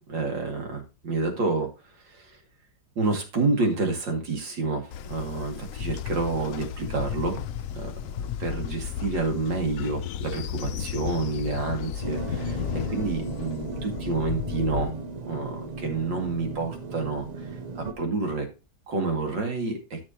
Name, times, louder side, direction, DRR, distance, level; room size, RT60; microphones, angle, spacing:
voice 1, 0.1-1.7 2.0-2.4 3.0-7.4 7.7-14.9 15.2-18.5 18.9-20.0, right 3 dB, 90° right, 3 dB, 2.9 m, -29 dB
Train, 4.9-14.9, left 9 dB, 70° left, 0.8 m, -34 dB
sound 1, 12.0-17.9, right 3 dB, 50° right, 0.5 m, -36 dB
13.0 x 6.1 x 2.8 m, 0.29 s
omnidirectional pair, 1.9 m